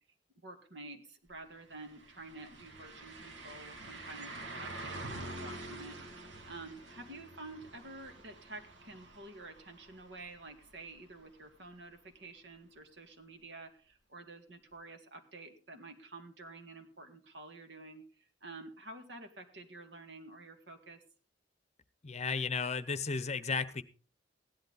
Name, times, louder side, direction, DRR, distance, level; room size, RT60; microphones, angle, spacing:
voice 1, 0.4-21.0, right 2 dB, 70° right, 6 dB, 2.1 m, -50 dB
sound 1, 1.3-1.4 1.7-11.5 11.9-12.0 14.7-14.8, right 2 dB, 85° right, 2.3 m, -47 dB
voice 2, 22.0-23.8, left 5 dB, 35° left, 14 dB, 0.8 m, -34 dB
16.5 x 11.0 x 4.0 m, 0.38 s
head